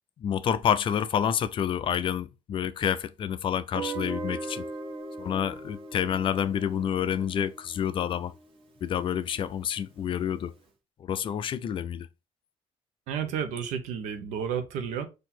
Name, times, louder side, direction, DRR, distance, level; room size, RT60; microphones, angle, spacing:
voice 1, 0.2-4.6 5.2-8.3 8.8-10.5 11.0-12.1, left 9 dB, 45° left, 0.4 m, -28 dB
Guitar, 3.7-8.6, right 3 dB, 45° right, 1.1 m, -39 dB
voice 2, 13.1-15.1, right 8 dB, 90° right, 0.9 m, -31 dB
3.9 x 2.7 x 4.3 m
cardioid pair, 110°, 12 cm